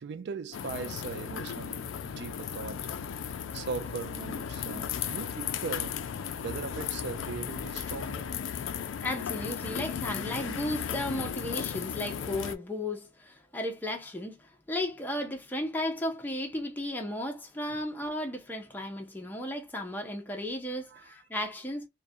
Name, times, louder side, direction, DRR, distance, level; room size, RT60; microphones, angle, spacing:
voice 1, 0.0-2.9 3.5-6.0 6.4-8.3 20.9-21.2, right 5 dB, 55° right, 0.3 m, -39 dB
sound 1, 0.5-12.6, left 8 dB, 75° left, 0.3 m, -35 dB
voice 2, 9.0-21.9, left 1 dB, 10° left, 0.5 m, -34 dB
2.4 x 2.1 x 2.5 m
head